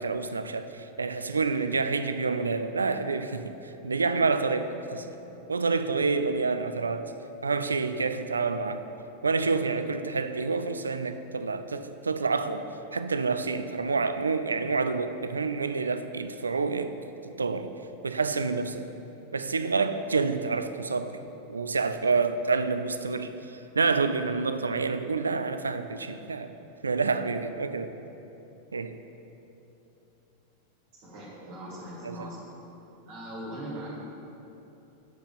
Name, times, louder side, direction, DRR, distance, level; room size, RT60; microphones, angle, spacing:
voice 1, 0.0-5.1 5.5-7.1 7.4-8.8 9.2-17.0 17.2-17.7 18.0-18.9 19.3-21.2 21.5-26.5 26.8-27.9 28.7-29.0 32.0-32.3, right 4 dB, 75° right, 10 dB, 0.3 m, -28 dB
voice 2, 30.9-32.4 33.1-33.9, right 1 dB, 50° right, -6 dB, 1.7 m, -40 dB
7.5 x 5.1 x 5.4 m, 3.0 s
figure-of-eight pair, 90°, 0 cm